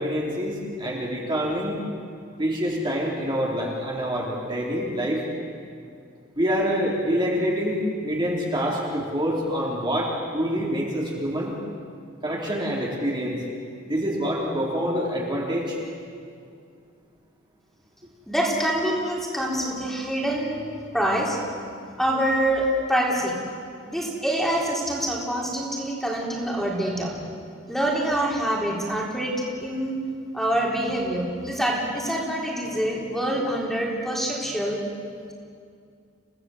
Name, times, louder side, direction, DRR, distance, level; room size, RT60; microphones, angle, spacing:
voice 1, 0.0-1.8 2.4-5.2 6.3-11.5 12.2-13.4 13.8-15.8, equal, 25° right, -3 dB, 3.5 m, -26 dB
voice 2, 18.3-21.4 22.0-23.4 23.9-27.1 27.7-30.0 30.3-34.8, right 1 dB, ahead, -3 dB, 4.0 m, -25 dB
29.5 x 17.5 x 7.9 m, 2.3 s
head